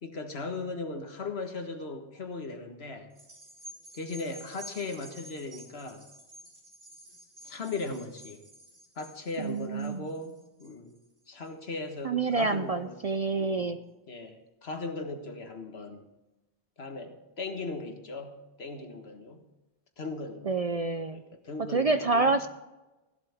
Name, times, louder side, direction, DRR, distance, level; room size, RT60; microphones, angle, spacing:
voice 1, 0.0-3.1 3.9-6.1 7.4-8.4 9.0-10.9 11.3-13.0 13.3-13.8 14.1-16.1 16.8-19.4 20.0-20.5 21.1-22.4, left 3 dB, 70° left, 5 dB, 1.7 m, -38 dB
sound 1, 3.1-11.8 12.3-12.4, right 1 dB, 90° right, 3.5 m, -51 dB
voice 2, 9.4-10.1 12.0-13.8 20.4-21.2 21.7-22.5, right 3 dB, 45° right, 9 dB, 0.5 m, -27 dB
16.5 x 11.5 x 3.5 m, 1.1 s
omnidirectional pair, 1.1 m